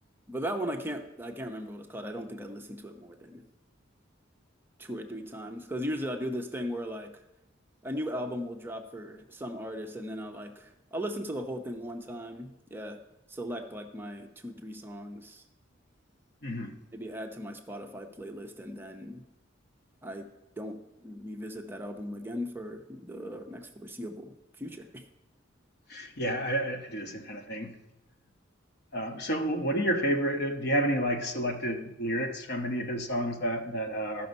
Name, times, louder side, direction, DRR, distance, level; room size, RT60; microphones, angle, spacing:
voice 1, 0.3-3.4 4.8-7.2 7.8-13.0 13.3-15.4 16.9-19.3 20.0-20.3 20.6-25.1, equal, 10° right, 4 dB, 0.6 m, -38 dB
voice 2, 16.4-16.7 25.9-27.7 28.9-34.3, equal, 55° left, 4 dB, 1.2 m, -30 dB
14.0 x 6.0 x 5.3 m, 0.92 s
head